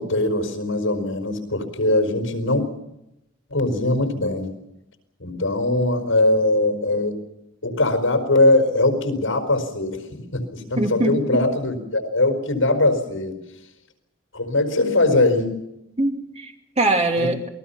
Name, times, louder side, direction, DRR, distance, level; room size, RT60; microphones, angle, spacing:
voice 1, 0.0-2.6 3.5-4.5 5.2-7.2 7.6-13.3 14.3-15.5 17.2-17.3, left 2 dB, 70° left, 6 dB, 4.8 m, -21 dB
voice 2, 10.8-11.4 16.0-17.5, right 2 dB, 30° right, 3 dB, 2.6 m, -22 dB
28.5 x 20.0 x 5.8 m, 0.86 s
head